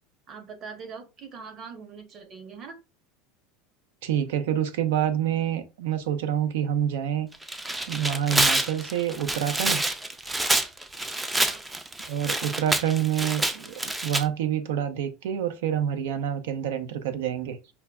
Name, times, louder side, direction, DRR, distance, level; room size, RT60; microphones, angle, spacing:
voice 1, 0.3-2.8 11.3-11.6, right 5 dB, 35° right, 0.9 m, -42 dB
voice 2, 4.0-7.3 7.9-9.8 12.0-17.6, right 10 dB, 85° right, 0.6 m, -27 dB
Tearing, 7.3-14.2, right 2 dB, 10° right, 0.3 m, -27 dB
5.4 x 2.2 x 2.3 m
supercardioid pair, 140°, 0 cm